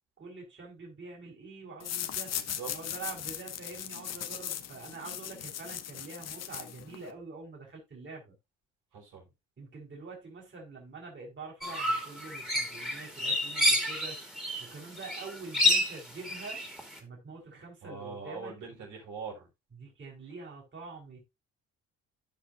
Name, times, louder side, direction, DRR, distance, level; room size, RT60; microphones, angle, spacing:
voice 1, 0.2-2.4 2.7-8.3 9.6-14.2 14.6-16.6 17.0-18.7 19.7-21.2, right 4 dB, 40° right, 4.7 m, -45 dB
sound 1, 1.8-7.1, left 10 dB, 60° left, 1.0 m, -38 dB
voice 2, 2.3-2.8 8.9-9.2 17.8-19.5, right 5 dB, 80° right, 5.3 m, -42 dB
sound 2, 11.6-14.7 15.0-16.9, left 1 dB, ahead, 2.5 m, -29 dB
15.5 x 5.3 x 2.6 m
cardioid pair, 90°, 30 cm